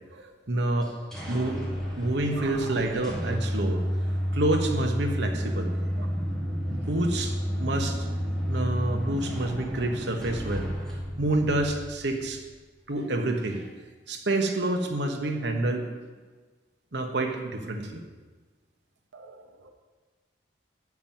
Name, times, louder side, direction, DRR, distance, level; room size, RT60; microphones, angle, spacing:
voice 1, 0.5-0.9 1.3-1.6 2.0-3.8 4.3-5.7 6.7-7.3 7.6-8.1 8.5-10.7 11.2-12.4 12.9-13.7 14.1-15.9 16.9-18.0, right 2 dB, 60° right, 1.1 m, -28 dB
sound 1, 0.8-12.5, equal, 5° left, 1.5 m, -31 dB
voice 2, 2.3-2.8 6.0-6.1 19.1-19.7, right 4 dB, 80° right, 0.8 m, -44 dB
7.5 x 6.1 x 7.3 m
head